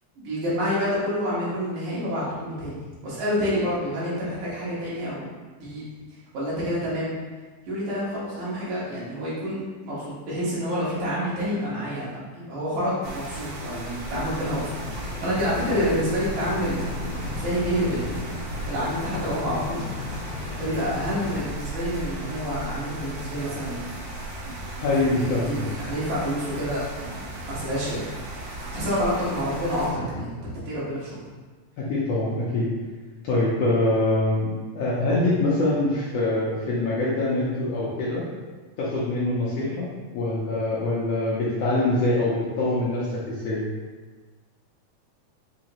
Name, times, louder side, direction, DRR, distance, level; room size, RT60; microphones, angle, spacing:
voice 1, 0.2-5.3 5.6-5.8 6.3-7.1 7.6-14.8 15.2-18.2 18.6-19.9 20.6-23.9 24.8-28.0 28.7-30.4 30.7-31.3, equal, 70° right, -9 dB, 2.8 m, -28 dB
spring-squall, 13.0-29.9, right 2 dB, 85° right, 2.8 m, -36 dB
sound 1, 14.8-21.4, left 3 dB, 90° left, 2.1 m, -35 dB
voice 2, 24.8-25.6 31.8-32.7 33.2-34.5 34.7-38.2 38.8-43.6, left 2 dB, 70° left, -8 dB, 1.5 m, -24 dB
6.0 x 2.8 x 2.9 m, 1.3 s
omnidirectional pair, 3.5 m